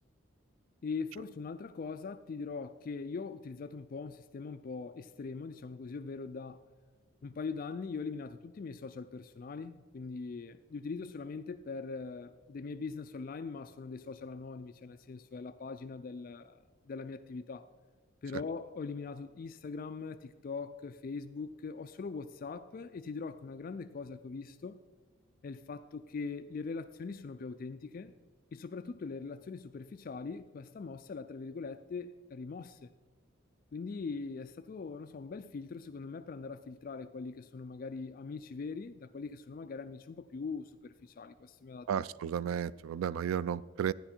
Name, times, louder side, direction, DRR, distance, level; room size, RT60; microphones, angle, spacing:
voice 1, 0.8-6.6 7.2-17.7 18.2-24.9 25.4-28.1 28.5-32.9 33.7-41.9, left 4 dB, 45° left, 0.3 m, -41 dB
voice 2, 41.9-43.9, right 8 dB, 90° right, 0.3 m, -33 dB
13.5 x 9.8 x 4.4 m
head